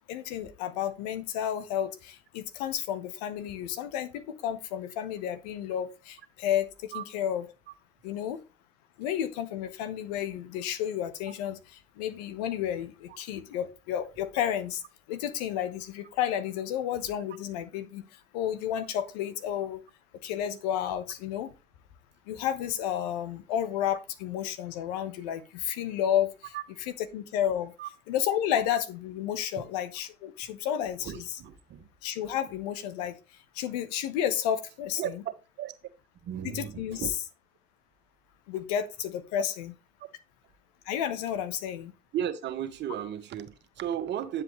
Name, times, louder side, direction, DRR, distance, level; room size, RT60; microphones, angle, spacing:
voice 1, 0.1-7.4 8.0-8.4 9.0-11.6 12.0-14.8 15.1-18.0 18.3-19.8 20.2-21.5 22.3-26.3 27.1-27.7 28.1-31.3 32.0-33.2 33.5-35.1 36.4-37.0 38.5-39.7 40.9-41.9, left 10 dB, 80° left, 1.1 m, -31 dB
voice 2, 26.5-26.8 27.8-27.9 31.0-31.9 35.0-35.1 35.6-35.7 36.2-37.1 42.1-44.4, right 10 dB, 60° right, 1.3 m, -35 dB
9.7 x 7.5 x 3.1 m
hypercardioid pair, 55°, 20 cm